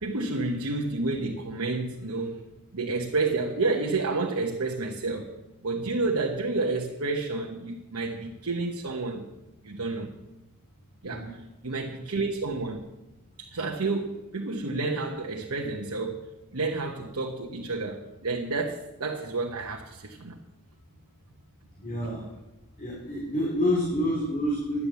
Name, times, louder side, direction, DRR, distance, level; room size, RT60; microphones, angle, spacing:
voice 1, 0.0-2.4 2.7-5.3 5.6-9.2 9.6-10.1 11.0-11.4 11.6-12.8 13.4-16.2 16.5-20.4, right 3 dB, 85° right, 0 dB, 1.1 m, -30 dB
voice 2, 21.8-22.2 22.8-24.9, equal, 35° left, -3 dB, 3.1 m, -28 dB
11.0 x 10.0 x 6.9 m, 0.99 s
head